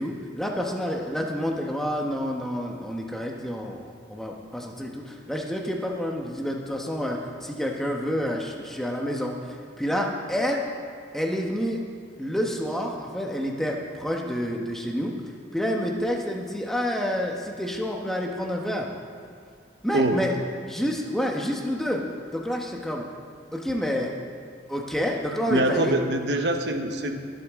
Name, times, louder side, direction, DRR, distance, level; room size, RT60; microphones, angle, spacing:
voice 1, 0.0-10.7 11.1-11.8 12.2-15.1 15.5-18.9 19.8-20.4 20.7-22.0 22.3-23.0 23.5-24.1 24.7-25.9, equal, ahead, 0 dB, 1.1 m, -28 dB
voice 2, 25.5-27.2, right 1 dB, 75° right, 5 dB, 1.0 m, -24 dB
23.0 x 8.3 x 3.7 m, 2.2 s
head